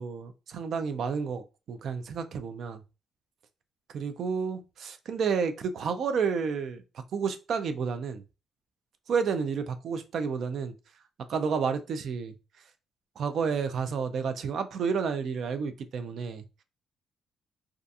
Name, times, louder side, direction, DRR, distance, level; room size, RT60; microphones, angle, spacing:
voice 1, 0.0-2.8 3.9-6.8 7.1-8.2 9.1-10.7 11.3-12.3 13.2-16.4, right 6 dB, 65° right, 0.4 m, -30 dB
2.4 x 2.3 x 2.6 m
cardioid pair, 90°, 0 cm